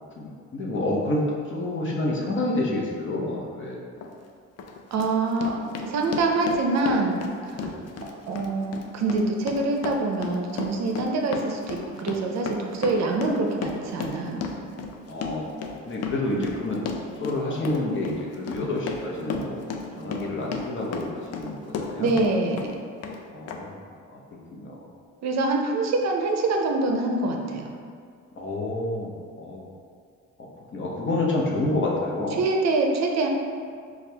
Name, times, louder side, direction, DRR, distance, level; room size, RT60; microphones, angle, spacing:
voice 1, 0.2-3.8 7.5-7.9 15.1-16.8 17.1-19.6 20.0-22.1 23.3-23.8 24.1-24.2 24.5-24.9 28.4-29.7 30.7-32.4, left 2 dB, 40° left, -3 dB, 0.8 m, -29 dB
Run, 4.0-4.1 4.6-22.3 22.6-23.2 23.5-23.6, left 5 dB, 55° left, 0.4 m, -34 dB
voice 2, 4.9-7.1 7.4-7.7 8.3-14.5 22.0-22.7 25.2-27.7 32.4-33.3, right 2 dB, 60° right, 2 dB, 0.5 m, -25 dB
4.2 x 2.4 x 3.3 m, 2.1 s
cardioid pair, 90°, 30 cm